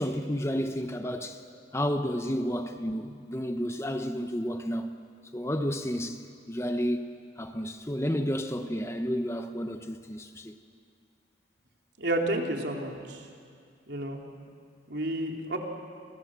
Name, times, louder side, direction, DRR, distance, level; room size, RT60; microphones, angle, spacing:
voice 1, 0.0-1.4 1.7-4.9 5.3-6.2 6.5-10.5, equal, 15° left, 1.0 m, -31 dB
voice 2, 12.0-13.2 13.9-14.2 14.9-15.6, right 1 dB, 65° right, 3.6 m, -30 dB
30.0 x 25.5 x 7.6 m
head